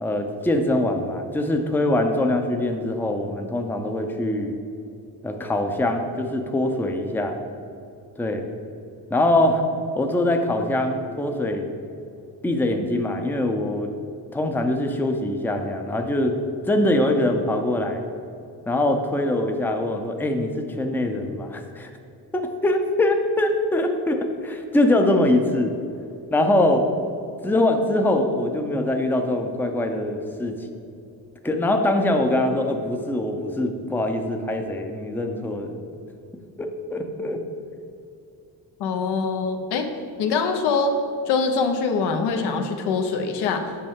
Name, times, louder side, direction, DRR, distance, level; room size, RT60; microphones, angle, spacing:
voice 1, 0.0-4.6 5.2-7.3 8.2-8.4 9.1-9.6 10.0-11.7 12.4-13.9 14.3-16.3 16.6-18.0 18.7-21.9 22.3-25.7 26.3-26.9 27.4-30.6 31.4-35.8 36.6-37.4, left 1 dB, 5° left, 4 dB, 0.6 m, -23 dB
voice 2, 38.8-39.9 40.2-40.9 41.3-43.8, left 4 dB, 70° left, 5 dB, 0.9 m, -23 dB
7.7 x 5.4 x 3.6 m, 2.5 s
cardioid pair, 85°, 41 cm